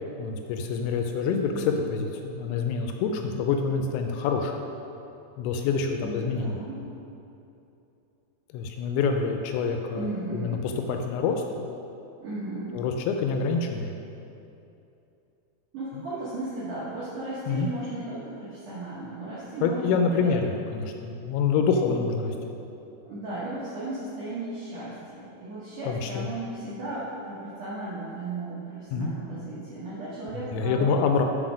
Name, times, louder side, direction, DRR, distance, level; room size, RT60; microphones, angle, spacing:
voice 1, 0.2-4.5 5.4-6.6 8.5-11.4 12.7-13.9 17.5-17.7 19.6-22.3 25.9-26.3 28.9-29.1 30.5-31.2, left 5 dB, 85° left, 4 dB, 2.7 m, -26 dB
voice 2, 6.0-6.8 9.9-10.6 12.2-12.8 15.7-20.3 21.6-21.8 23.0-31.0, right 2 dB, 75° right, -10 dB, 1.9 m, -35 dB
6.1 x 6.0 x 5.0 m, 2.8 s
omnidirectional pair, 5.4 m